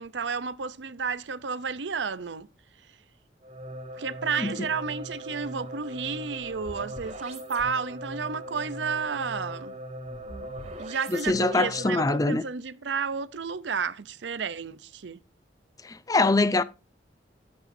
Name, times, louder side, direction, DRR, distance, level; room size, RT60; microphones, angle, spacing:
voice 1, 0.0-2.5 3.9-9.8 10.8-15.2, right 5 dB, 80° right, 0.7 m, -32 dB
sound 1, 3.4-12.2, equal, 40° right, 4.2 m, -39 dB
voice 2, 11.1-12.4 15.8-16.6, left 2 dB, 20° left, 0.5 m, -23 dB
13.5 x 8.7 x 2.7 m
head